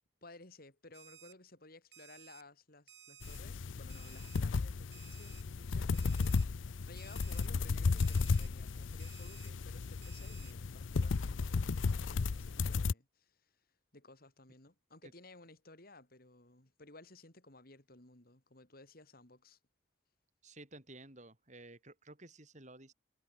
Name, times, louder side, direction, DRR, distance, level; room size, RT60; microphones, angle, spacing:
voice 1, 0.2-13.5 13.9-19.6, left 2 dB, 50° left, 3.6 m, -57 dB
Alarm, 0.9-1.3 1.9-2.4 2.9-3.4 3.9-4.4 4.9-5.4 5.9-6.4 7.0-7.5 8.0-8.5 9.0-9.5 10.0-10.5, right 11 dB, 65° right, 7.3 m, -57 dB
sound 1, 3.2-12.9, left 4 dB, 85° left, 0.6 m, -34 dB
voice 2, 20.4-22.9, right 2 dB, 40° right, 7.5 m, -54 dB
head